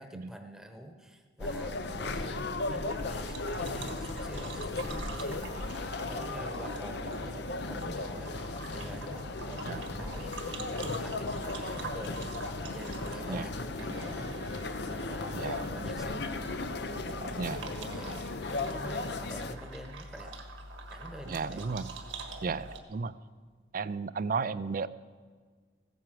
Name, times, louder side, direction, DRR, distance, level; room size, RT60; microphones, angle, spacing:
voice 1, 0.0-14.4 14.9-20.4 20.9-21.6 22.4-22.6, right 1 dB, 5° right, 5 dB, 1.1 m, -47 dB
sound 1, 1.4-19.6, left 3 dB, 60° left, 0.8 m, -36 dB
sound 2, 2.8-22.8, right 2 dB, 75° right, 1.6 m, -44 dB
voice 2, 15.3-15.7 17.4-17.7 21.3-21.9 22.4-22.6 22.9-23.1 23.7-24.9, right 4 dB, 45° right, 15 dB, 0.4 m, -33 dB
15.5 x 9.5 x 7.5 m, 1.5 s
head